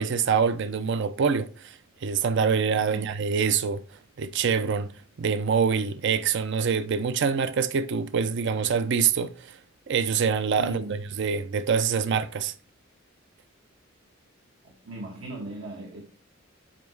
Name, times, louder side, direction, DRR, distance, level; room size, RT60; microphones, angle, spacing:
voice 1, 0.0-3.8 4.2-4.9 5.2-9.6 9.9-12.5, right 6 dB, 60° right, 0.5 m, -25 dB
voice 2, 10.6-11.0 14.8-16.0, right 2 dB, 85° right, 1.4 m, -38 dB
7.4 x 4.6 x 3.1 m
head